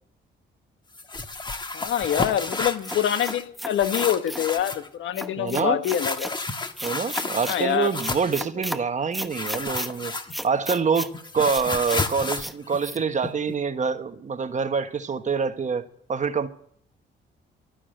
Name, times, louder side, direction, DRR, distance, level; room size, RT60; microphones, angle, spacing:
sound 1, 0.9-3.4 3.7-4.9 5.9-8.4 9.3-10.6 10.9-13.5, left 3 dB, 20° left, 1.4 m, -31 dB
voice 1, 1.7-6.3 7.5-7.9 8.4-8.5, left 10 dB, 75° left, 10 dB, 1.4 m, -25 dB
sound 2, 2.5-4.5 5.1-6.4 6.8-7.6 8.0-8.8 9.1-9.9 10.3-11.1 11.5-12.0 12.4-12.5 12.8-13.0, equal, ahead, 1.0 m, -34 dB
voice 2, 5.4-5.8 6.8-10.1 10.4-11.1 11.3-15.8 16.1-16.5, right 5 dB, 40° right, 9 dB, 1.3 m, -26 dB
13.0 x 9.8 x 7.8 m, 0.62 s
cardioid pair, 90°, 20 cm